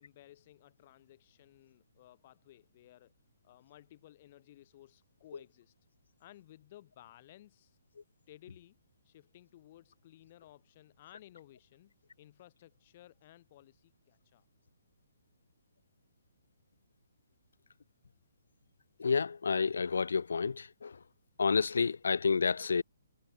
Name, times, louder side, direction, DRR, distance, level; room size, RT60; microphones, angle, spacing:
voice 1, 0.0-3.1 3.4-5.7 6.2-7.8 8.3-8.8 9.0-14.5, left 14 dB, 40° left, 6.3 m, -58 dB
voice 2, 19.0-20.9 21.4-22.8, left 5 dB, 65° left, 0.3 m, -29 dB
figure-of-eight pair, 130°, 0 cm